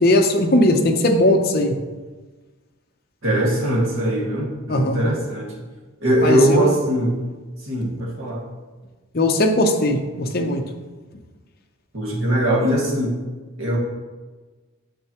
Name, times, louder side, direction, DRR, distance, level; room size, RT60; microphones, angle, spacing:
voice 1, 0.0-1.8 4.7-5.1 6.2-6.7 9.1-10.6, left 1 dB, 45° left, 3 dB, 0.8 m, -18 dB
voice 2, 3.2-5.7 6.0-7.1 7.6-8.4 11.9-13.2 13.6-13.8, right 1 dB, 60° right, -4 dB, 2.0 m, -21 dB
8.9 x 6.7 x 3.0 m, 1.3 s
head